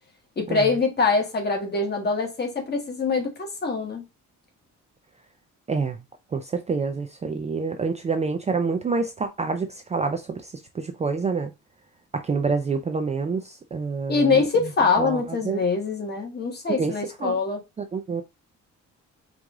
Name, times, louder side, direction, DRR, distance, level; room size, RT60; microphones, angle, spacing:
voice 1, 0.4-4.0 14.1-17.6, left 4 dB, 35° left, 1.3 m, -24 dB
voice 2, 6.3-10.2 10.8-11.5 12.1-14.4 15.0-15.6 16.8-16.9 17.2-17.4 17.9-18.2, right 4 dB, 25° right, 0.4 m, -27 dB
4.7 x 2.6 x 3.6 m
cardioid pair, 155°, 30 cm